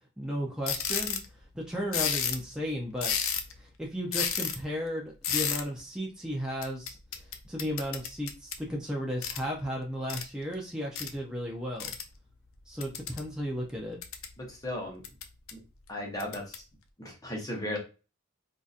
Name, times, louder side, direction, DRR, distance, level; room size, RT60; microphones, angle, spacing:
voice 1, 0.2-1.2 1.5-3.1 3.6-7.0 7.4-11.9 12.7-14.0, equal, 5° right, -2 dB, 0.6 m, -34 dB
sound 1, 0.7-1.3 1.9-2.5 3.0-3.6 4.1-4.6 5.2-5.6 6.6-8.6 9.2-9.4 10.1-10.2 11.0-11.1 11.8-12.0 12.8-13.3 13.8-14.3 15.0-15.5 16.2-16.6, left 7 dB, 70° left, 0.5 m, -31 dB
voice 2, 14.4-15.0 15.5-15.6 15.9-16.6 17.0-17.8, left 1 dB, 15° left, 0 dB, 0.9 m, -36 dB
3.7 x 2.7 x 2.5 m, 0.31 s
head